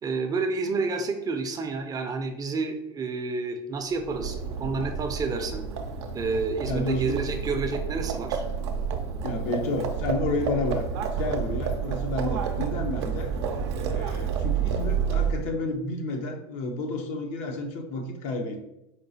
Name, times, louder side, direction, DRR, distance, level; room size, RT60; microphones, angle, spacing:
voice 1, 0.0-5.6 6.1-8.4, right 4 dB, 25° right, 5 dB, 0.5 m, -29 dB
Livestock farm animals working animals, 4.0-15.6, right 6 dB, 80° right, 0.5 m, -29 dB
voice 2, 6.7-7.2 9.2-10.9 11.2-13.3 13.7-18.6, left 2 dB, 60° left, 4 dB, 0.7 m, -31 dB
4.5 x 2.4 x 2.7 m, 0.85 s
supercardioid pair, 110°, 14 cm